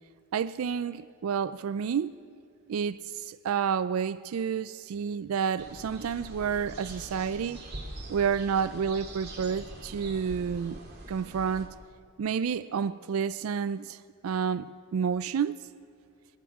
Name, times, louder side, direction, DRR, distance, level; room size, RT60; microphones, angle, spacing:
voice 1, 0.3-2.2 2.7-7.6 8.1-10.8 11.1-11.7 12.2-14.0 14.2-14.7 14.9-15.6, right 7 dB, 80° right, 0.4 m, -30 dB
sound 1, 5.6-11.7, right 1 dB, 50° right, 2.4 m, -43 dB
26.0 x 11.0 x 4.8 m
head